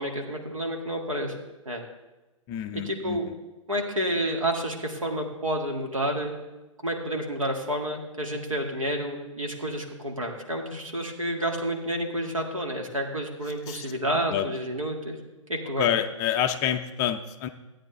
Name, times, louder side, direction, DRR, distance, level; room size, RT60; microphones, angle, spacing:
voice 1, 0.0-1.3 1.7-1.8 2.7-3.3 3.7-6.3 6.8-15.2 15.5-15.9, right 1 dB, 75° right, 2 dB, 2.0 m, -30 dB
voice 2, 2.5-3.2 13.7-13.9 14.3-14.5 15.8-17.5, left 10 dB, 20° left, 7 dB, 0.4 m, -27 dB
15.0 x 8.9 x 3.4 m, 1.1 s
figure-of-eight pair, 120°, 17 cm